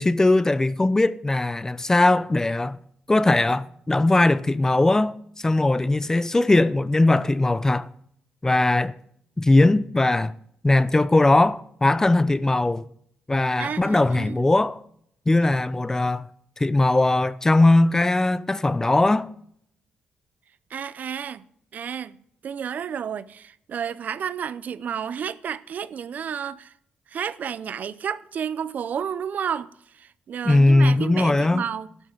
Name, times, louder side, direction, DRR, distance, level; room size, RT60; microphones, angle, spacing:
voice 1, 0.0-2.8 3.1-7.9 8.4-8.9 9.4-10.3 10.6-12.8 13.3-14.8 15.3-16.2 16.6-19.3 30.4-31.6, left 2 dB, 15° left, 0.6 m, -20 dB
voice 2, 13.6-14.4 20.7-21.4 21.7-22.2 22.4-26.7 27.1-29.7 30.0-31.9, right 8 dB, 60° right, 0.6 m, -31 dB
12.5 x 11.5 x 3.9 m
cardioid pair, 90°, 3 cm